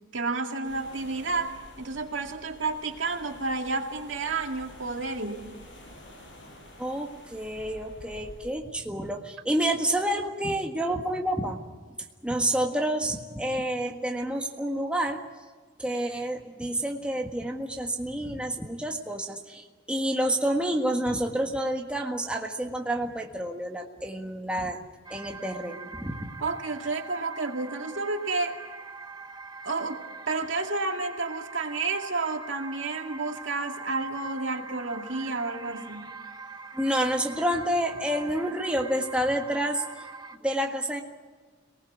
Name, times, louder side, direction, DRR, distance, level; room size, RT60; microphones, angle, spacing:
voice 1, 0.1-5.5 26.4-28.6 29.6-36.1, right 3 dB, 75° right, 3 dB, 2.3 m, -31 dB
sound 1, 0.6-8.5, left 1 dB, 65° left, 6.5 m, -49 dB
voice 2, 6.8-11.6 12.2-15.2 15.8-24.8 25.1-26.3 36.7-40.0 40.4-41.0, right 1 dB, 5° right, 1 dB, 1.6 m, -29 dB
sound 2, 25.0-40.4, right 4 dB, 20° right, 1.0 m, -43 dB
26.0 x 19.5 x 8.1 m, 1.4 s
head